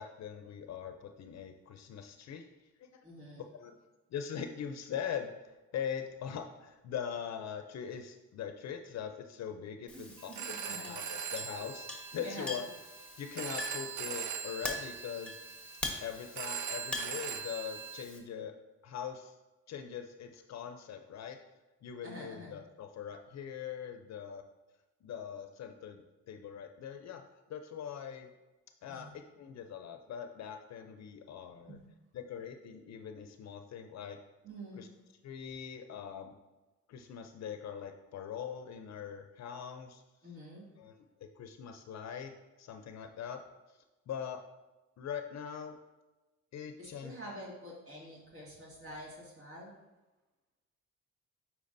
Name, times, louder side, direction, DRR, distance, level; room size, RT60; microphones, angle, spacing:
voice 1, 0.0-2.5 2.8-3.0 3.5-3.8 4.1-10.3 10.6-12.6 13.2-15.6 16.0-18.5 18.8-19.4 19.7-21.4 21.8-24.4 25.0-27.2 27.5-28.3 28.8-29.1 29.4-31.8 32.1-34.2 34.8-34.9 35.2-36.4 36.9-40.0 40.8-42.3 42.6-43.4 44.1-44.4 45.0-45.7 46.5-47.1, left 8 dB, 60° left, 6 dB, 0.6 m, -42 dB
voice 2, 3.0-3.5 9.9-11.0 12.2-12.6 22.0-22.6 28.9-29.1 31.7-31.8 34.4-34.9 40.2-40.7 46.8-49.7, equal, 45° right, -4 dB, 2.2 m, -47 dB
Chink clink, 9.9-18.2, left 2 dB, 5° left, 1.1 m, -44 dB
Telephone, 10.2-18.0, right 7 dB, 80° right, 0.7 m, -41 dB
8.5 x 4.7 x 2.6 m, 1.1 s
cardioid pair, 90°, 30 cm